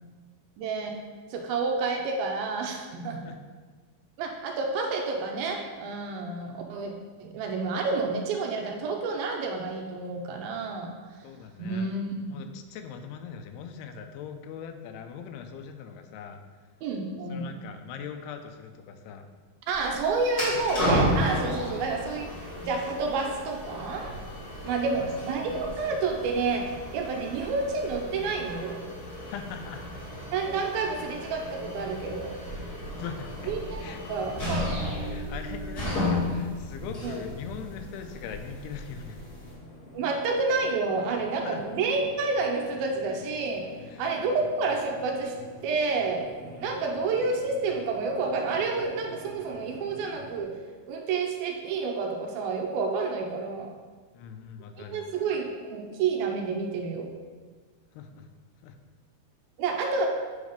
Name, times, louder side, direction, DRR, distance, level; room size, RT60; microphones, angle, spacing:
voice 1, 0.6-0.9 1.3-3.2 4.2-6.9 7.2-10.9 11.6-12.4 16.8-17.6 19.7-24.1 24.6-28.8 30.3-32.3 33.5-34.7 37.0-37.2 39.9-43.7 44.0-45.3 45.6-50.5 50.8-53.7 54.8-57.1 59.6-60.1, right 4 dB, 80° right, 2 dB, 2.4 m, -29 dB
voice 2, 11.2-11.9 12.3-16.4 17.3-19.3 24.8-25.1 29.3-29.8 32.3-33.5 33.8-34.0 35.0-39.3 41.4-41.6 43.9-44.0 46.6-46.7 54.1-55.4 57.9-58.3 58.6-58.8, left 7 dB, 85° left, 7 dB, 2.6 m, -41 dB
sound 1, 19.7-39.5, left 1 dB, 30° left, 2.1 m, -33 dB
sound 2, 35.6-50.4, left 2 dB, 65° left, 1.5 m, -48 dB
8.3 x 4.0 x 5.1 m, 1.4 s
omnidirectional pair, 4.6 m